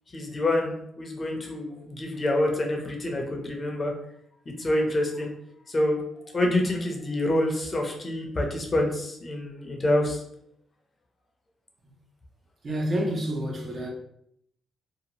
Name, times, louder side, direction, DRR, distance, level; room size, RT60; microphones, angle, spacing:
voice 1, 0.1-3.9 4.5-5.3 5.7-10.2, left 1 dB, 30° left, 0.6 m, -27 dB
voice 2, 12.6-13.9, equal, 45° right, 0.6 m, -28 dB
2.7 x 2.1 x 2.9 m
cardioid pair, 90°, 0 cm